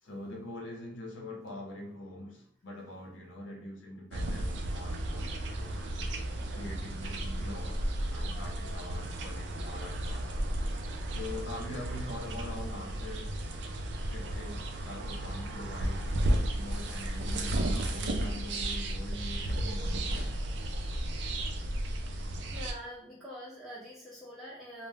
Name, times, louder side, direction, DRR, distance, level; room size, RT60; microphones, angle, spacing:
voice 1, 0.0-5.9 6.5-10.3 11.1-13.3 14.1-16.1 16.6-20.3, left 1 dB, 85° left, 1 dB, 0.7 m, -44 dB
sound 1, 4.1-22.7, right 1 dB, 65° right, 0.4 m, -33 dB
voice 2, 22.5-24.9, equal, ahead, -7 dB, 0.4 m, -45 dB
2.1 x 2.1 x 3.3 m, 0.64 s
head